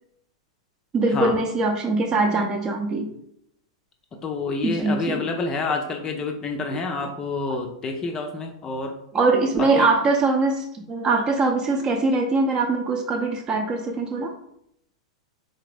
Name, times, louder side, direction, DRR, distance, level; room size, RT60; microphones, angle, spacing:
voice 1, 0.9-3.1 4.6-5.3 6.7-7.1 7.5-7.6 9.1-14.3, right 3 dB, 25° right, 4 dB, 0.7 m, -22 dB
voice 2, 4.2-8.9 9.6-9.9, left 3 dB, 25° left, 4 dB, 0.6 m, -28 dB
4.2 x 3.7 x 3.4 m, 0.74 s
figure-of-eight pair, 95°, 3 cm